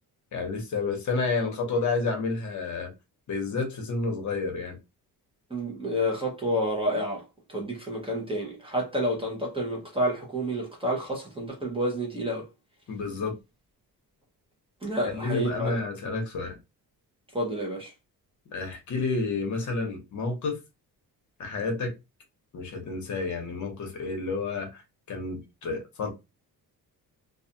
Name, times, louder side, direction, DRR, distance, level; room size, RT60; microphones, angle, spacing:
voice 1, 0.3-2.9 3.3-4.8 12.9-13.4 15.0-16.6 18.5-20.6 21.4-21.9 22.5-24.8 25.1-26.1, left 3 dB, 50° left, 0.9 m, -30 dB
voice 2, 5.5-7.2 7.5-12.4 14.8-15.8 17.3-17.9, equal, 15° right, 0.7 m, -29 dB
2.4 x 2.3 x 2.7 m
cardioid pair, 165°, 37 cm